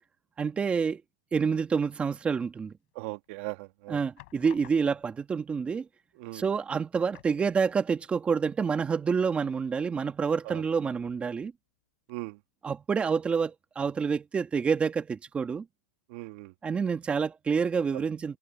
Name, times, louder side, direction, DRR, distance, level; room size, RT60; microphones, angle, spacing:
voice 1, 0.4-1.0 1.3-2.7 3.9-5.9 6.3-11.5 12.6-15.7 16.6-18.4, right 6 dB, 15° right, 2.0 m, -28 dB
sound 1, 2.9-3.4 4.2-5.2 6.2-6.3 6.6-6.7 7.1-8.1 8.4-8.5 10.8-11.5 12.1-12.2, left 24 dB, 50° left, 7.9 m, -55 dB
voice 2, 2.9-4.0 6.2-6.4 10.4-10.6 12.1-12.4 16.1-16.5 17.9-18.0, right 23 dB, 45° right, 1.6 m, -39 dB
hypercardioid pair, 145°, 9 cm